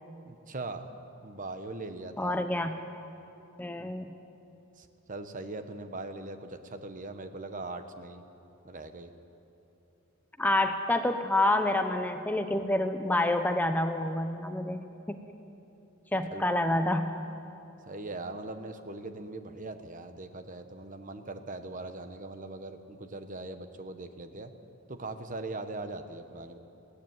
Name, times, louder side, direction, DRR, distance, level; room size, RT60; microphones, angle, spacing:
voice 1, 0.2-0.9 1.2-2.4 3.8-3.9 4.8-8.2 8.6-9.1 16.3-16.5 17.9-24.5 24.9-26.6, right 2 dB, 40° right, 8 dB, 1.2 m, -40 dB
voice 2, 2.2-2.7 3.6-4.1 10.4-15.3 16.1-17.1, left 1 dB, 10° left, 7 dB, 0.7 m, -28 dB
21.5 x 17.0 x 9.5 m, 2.9 s
head